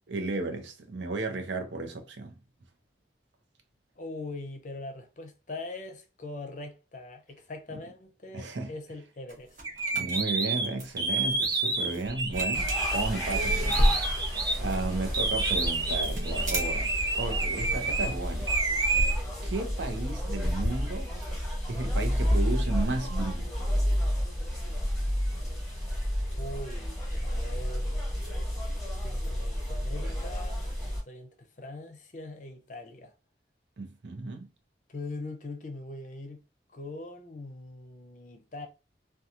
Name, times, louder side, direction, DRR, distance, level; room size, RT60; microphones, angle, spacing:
voice 1, 0.1-2.3 8.3-8.7 9.9-16.9 17.2-18.5 19.4-21.1 21.7-23.5 33.8-34.5, right 3 dB, 90° right, 0.6 m, -34 dB
voice 2, 4.0-9.6 26.4-28.0 29.0-33.1 34.9-36.4 36.7-38.7, left 2 dB, 45° left, 0.5 m, -42 dB
sound 1, 9.3-17.0, equal, 45° right, 0.7 m, -33 dB
sound 2, 9.6-14.6 15.1-18.1 18.5-19.1, right 3 dB, 20° right, 0.4 m, -29 dB
sound 3, 12.5-31.0, equal, 5° left, 1.0 m, -31 dB
2.8 x 2.3 x 2.4 m
head